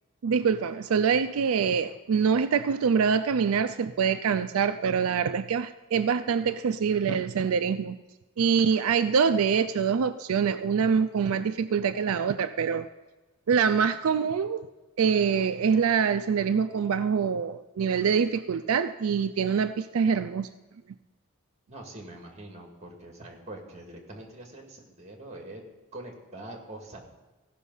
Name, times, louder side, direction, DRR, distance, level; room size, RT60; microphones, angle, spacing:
voice 1, 0.2-8.0 8.4-12.9 13.5-14.6 15.0-20.5, right 6 dB, 85° right, 10 dB, 0.4 m, -25 dB
voice 2, 21.7-25.6 25.9-27.0, right 1 dB, 30° right, 1 dB, 2.1 m, -44 dB
15.5 x 6.1 x 5.5 m, 1.1 s
head